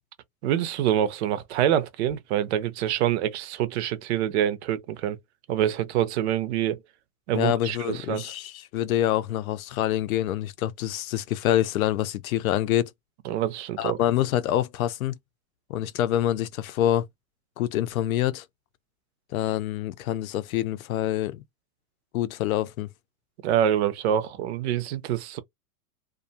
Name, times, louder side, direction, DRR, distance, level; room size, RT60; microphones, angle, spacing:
voice 1, 0.4-5.2 5.5-6.8 7.3-8.3 13.2-14.0 23.4-25.4, right 11 dB, 50° right, 0.6 m, -26 dB
voice 2, 7.3-12.9 13.8-15.2 15.7-17.1 17.6-18.4 19.3-21.4 22.1-22.9, left 12 dB, 70° left, 0.6 m, -26 dB
2.4 x 2.2 x 2.6 m
hypercardioid pair, 135°, 44 cm